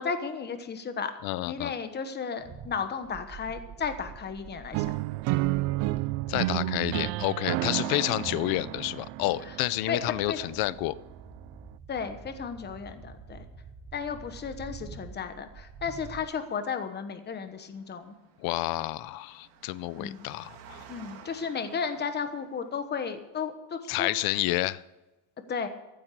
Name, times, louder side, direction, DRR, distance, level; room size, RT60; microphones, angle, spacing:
voice 1, 0.0-1.1 1.5-5.0 7.7-8.4 9.4-9.5 9.9-10.0 10.3-10.4 11.9-13.4 13.9-18.2 20.0-20.3 20.9-24.4 25.5-25.7, left 6 dB, 20° left, 8 dB, 1.1 m, -34 dB
voice 2, 1.2-1.7 6.3-10.9 18.4-20.8 23.9-24.8, left 17 dB, 50° left, 19 dB, 0.6 m, -29 dB
sound 1, 2.4-16.2, right 6 dB, 30° right, 1.6 m, -45 dB
sound 2, 4.7-10.7, right 18 dB, 60° right, 0.6 m, -31 dB
Engine, 17.2-22.9, right 7 dB, 90° right, 2.7 m, -53 dB
15.0 x 8.9 x 6.7 m, 1.1 s
cardioid pair, 160°, 49 cm